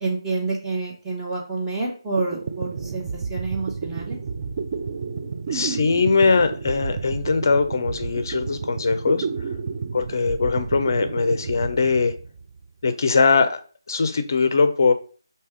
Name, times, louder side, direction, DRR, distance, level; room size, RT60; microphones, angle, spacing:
voice 1, 0.0-4.2, right 3 dB, 10° right, -4 dB, 0.9 m, -28 dB
sound 1, 1.9-2.0 2.2-12.6, right 5 dB, 30° right, 0.4 m, -31 dB
voice 2, 5.5-9.3 9.9-12.1 12.8-13.6 13.9-14.9, left 4 dB, 45° left, 10 dB, 0.5 m, -21 dB
3.3 x 2.8 x 4.6 m, 0.40 s
figure-of-eight pair, 155°, 2 cm